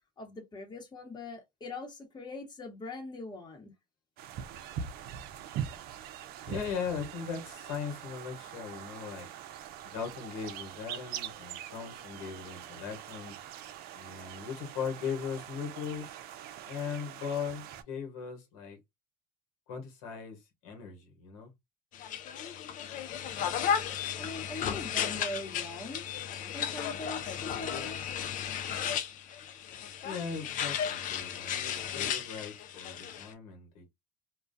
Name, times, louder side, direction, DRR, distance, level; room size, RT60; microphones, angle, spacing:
voice 1, 0.2-3.7 24.2-26.0 26.5-28.0, left 2 dB, 25° left, 1.0 m, -42 dB
sound 1, 4.2-17.8, right 9 dB, 65° right, 0.5 m, -43 dB
voice 2, 6.5-9.3 9.8-13.4 13.9-16.1 16.6-18.8 19.7-21.5 30.0-31.6 31.9-33.9, left 6 dB, 85° left, 1.0 m, -39 dB
sound 2, 21.9-33.3, left 8 dB, 50° left, 0.5 m, -34 dB
2.3 x 2.2 x 2.5 m
supercardioid pair, 90°, 17 cm